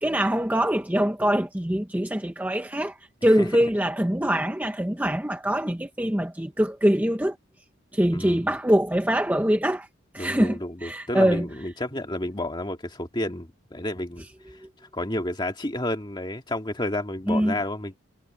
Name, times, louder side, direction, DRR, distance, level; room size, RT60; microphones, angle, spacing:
voice 1, 0.0-7.4 7.9-9.9 10.1-11.5 17.3-17.6, equal, 10° right, 0.8 m, -23 dB
voice 2, 10.2-14.3 14.9-18.0, left 1 dB, 20° left, 2.1 m, -31 dB
head